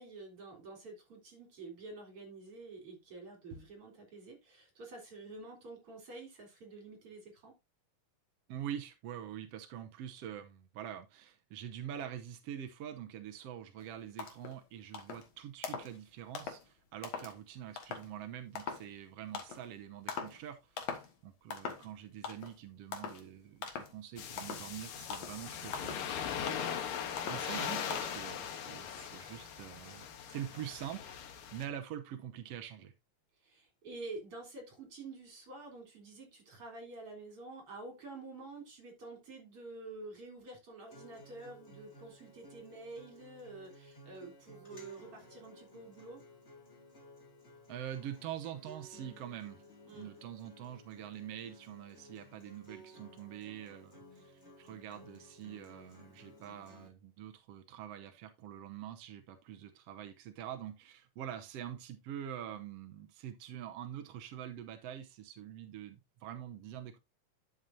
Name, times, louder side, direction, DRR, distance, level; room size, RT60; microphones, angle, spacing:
voice 1, 0.0-7.6 27.2-27.4 28.2-28.3 33.4-46.2 49.8-50.1, right 3 dB, 40° right, 4.6 m, -49 dB
voice 2, 8.5-26.0 26.7-26.9 27.2-31.2 31.5-32.9 47.7-49.6 49.9-67.0, right 10 dB, 70° right, 1.5 m, -45 dB
sound 1, 13.8-13.9 14.2-14.6 14.9-15.3 15.6-16.0 16.3-16.6 17.0-17.3 17.8-18.1 18.5-18.9 19.3-19.7 20.1-20.4 20.8-21.1 21.5-21.9 22.2-22.6 22.9-23.2 23.6-23.9 24.4-24.7 25.1-25.4 25.7-26.1 26.5-26.8 27.2-27.5 27.9-28.0, left 6 dB, 55° left, 2.3 m, -41 dB
sound 2, 24.2-31.7, left 8 dB, 85° left, 3.0 m, -40 dB
Acoustic guitar, 40.9-56.9, equal, 20° left, 3.2 m, -56 dB
11.0 x 7.2 x 2.6 m
omnidirectional pair, 3.9 m